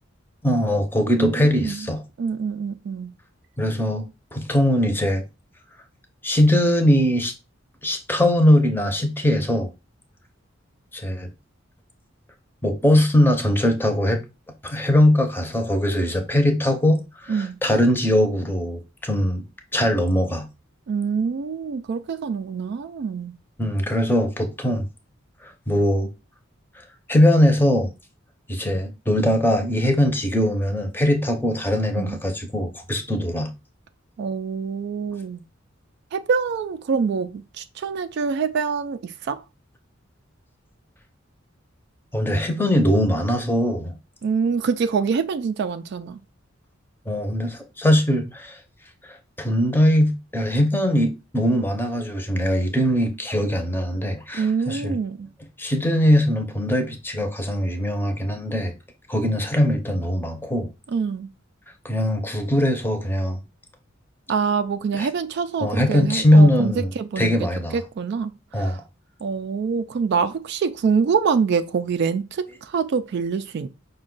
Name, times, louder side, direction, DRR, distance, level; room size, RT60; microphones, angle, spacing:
voice 1, 0.4-2.0 3.6-4.0 4.3-5.2 6.2-7.3 7.8-9.7 10.9-11.3 12.6-14.2 14.6-19.4 19.7-20.5 23.6-24.8 25.4-26.1 27.1-27.9 28.5-33.5 42.1-43.9 47.1-48.6 49.1-54.9 55.6-58.7 59.1-60.7 61.8-63.4 65.0-65.1 65.6-66.9 67.2-67.8 68.5-68.8, left 1 dB, 10° left, 0.6 m, -21 dB
voice 2, 1.2-1.9 2.2-3.1 17.3-17.6 20.9-23.4 31.9-32.2 34.2-35.4 36.1-39.4 44.2-46.2 54.3-55.3 60.9-61.3 64.3-67.5 67.7-68.8 69.2-73.7, right 5 dB, 60° right, 0.3 m, -25 dB
5.1 x 2.2 x 3.8 m
head